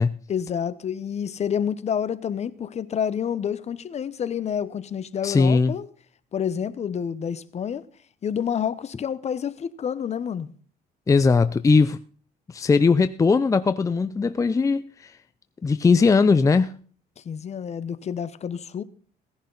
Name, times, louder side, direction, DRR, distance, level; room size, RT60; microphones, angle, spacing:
voice 1, 0.3-5.9 6.3-7.9 8.2-10.5 17.2-18.8, left 8 dB, 40° left, 1.0 m, -28 dB
voice 2, 5.2-5.7 11.1-12.0 12.5-15.2 15.6-16.8, left 4 dB, 20° left, 0.5 m, -19 dB
17.5 x 11.0 x 4.0 m
cardioid pair, 110°, 17 cm